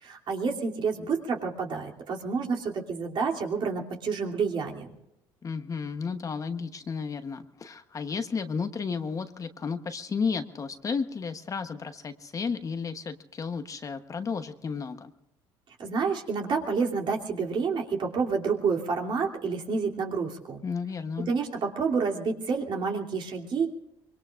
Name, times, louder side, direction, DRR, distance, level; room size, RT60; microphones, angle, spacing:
voice 1, 0.0-4.9 15.8-20.6 21.2-23.7, right 5 dB, 50° right, 0 dB, 2.9 m, -29 dB
voice 2, 5.4-15.1 20.6-21.3, left 5 dB, 35° left, 8 dB, 1.0 m, -33 dB
24.5 x 23.0 x 2.5 m, 0.88 s
cardioid pair, 100°, 10 cm